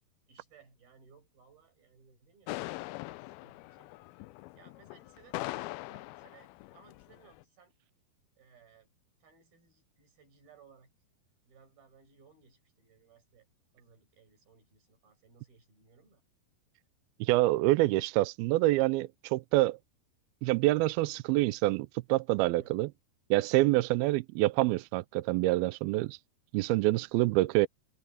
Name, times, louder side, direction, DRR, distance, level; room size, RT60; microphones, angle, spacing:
voice 1, 0.3-2.6 3.0-3.9 4.5-7.7 8.4-8.9 9.2-10.9 11.4-13.5 13.7-16.2 22.4-22.7, right 6 dB, 60° right, 8.5 m, -61 dB
sound 1, 2.5-7.4, left 20 dB, 85° left, 2.2 m, -42 dB
voice 2, 17.2-19.8 20.4-22.9 23.3-26.2 26.5-27.7, right 18 dB, 80° right, 2.2 m, -26 dB
omnidirectional pair, 4.8 m